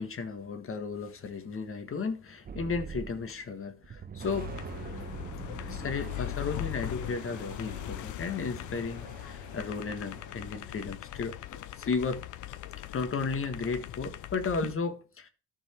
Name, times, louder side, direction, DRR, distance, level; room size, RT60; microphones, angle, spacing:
voice 1, 0.0-4.5 5.6-11.4 11.8-12.3 12.8-15.3, left 4 dB, 45° left, 1.6 m, -34 dB
sound 1, 2.5-3.5 3.8-10.9, right 7 dB, 30° right, 0.6 m, -44 dB
sound 2, 4.2-14.7, left 15 dB, 75° left, 0.6 m, -40 dB
13.5 x 4.6 x 4.6 m
cardioid pair, 90°, 30 cm